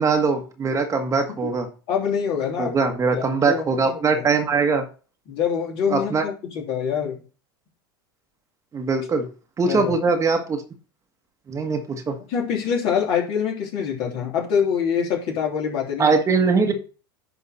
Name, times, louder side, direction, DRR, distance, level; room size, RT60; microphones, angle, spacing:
voice 1, 0.0-1.7 2.6-4.8 5.9-6.2 8.7-9.3 9.6-10.6 11.5-12.2 16.0-16.7, right 4 dB, 25° right, 5 dB, 1.5 m, -21 dB
voice 2, 1.9-2.8 3.1-4.2 5.3-7.2 9.6-9.9 12.3-16.2 16.6-16.7, left 7 dB, 50° left, -1 dB, 3.3 m, -25 dB
10.5 x 3.6 x 4.2 m, 0.35 s
hypercardioid pair, 90°, 12 cm